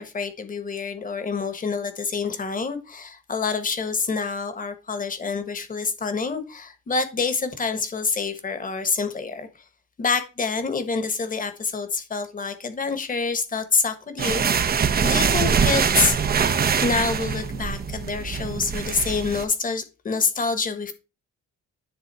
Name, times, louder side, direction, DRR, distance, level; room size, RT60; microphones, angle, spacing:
voice 1, 0.0-9.5 10.0-16.2 16.8-20.9, left 4 dB, 25° left, 10 dB, 1.4 m, -27 dB
sound 1, 14.2-19.4, right 6 dB, 30° right, 0.8 m, -23 dB
10.5 x 3.8 x 5.5 m, 0.30 s
cardioid pair, 155°, 30 cm